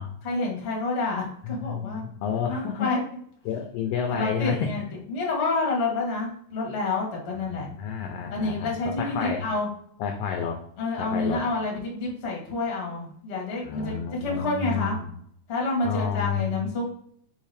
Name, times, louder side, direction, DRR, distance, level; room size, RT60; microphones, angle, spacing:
voice 1, 0.2-2.0 2.5-3.0 4.1-4.8 5.1-7.7 8.3-9.7 10.8-15.0 15.5-16.8, left 3 dB, 55° left, -2 dB, 0.7 m, -28 dB
voice 2, 1.4-2.9 3.4-4.7 7.5-9.4 10.0-10.6 11.0-11.4 13.6-15.1 15.8-16.7, left 7 dB, 85° left, 3 dB, 1.4 m, -30 dB
5.6 x 2.7 x 3.3 m, 0.65 s
omnidirectional pair, 3.4 m